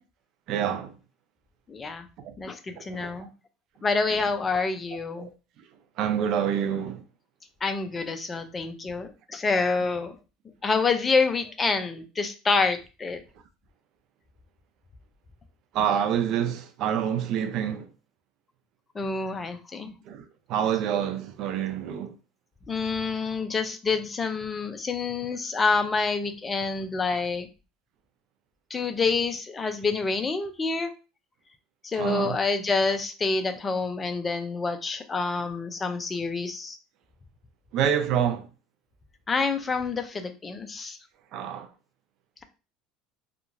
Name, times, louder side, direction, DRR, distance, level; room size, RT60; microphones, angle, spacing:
voice 1, 0.5-0.9 2.2-2.3 2.8-3.3 5.2-5.3 6.0-7.0 15.7-17.9 20.1-22.1 31.9-32.4 37.7-38.4 41.3-41.7, right 9 dB, 55° right, 0.5 m, -27 dB
voice 2, 1.7-2.1 2.4-3.3 3.8-5.3 7.6-10.2 10.6-13.2 18.9-19.9 22.7-27.5 28.7-30.9 31.8-36.8 39.3-41.0, left 4 dB, 20° left, 0.5 m, -27 dB
2.9 x 2.4 x 2.5 m
supercardioid pair, 105°, 0 cm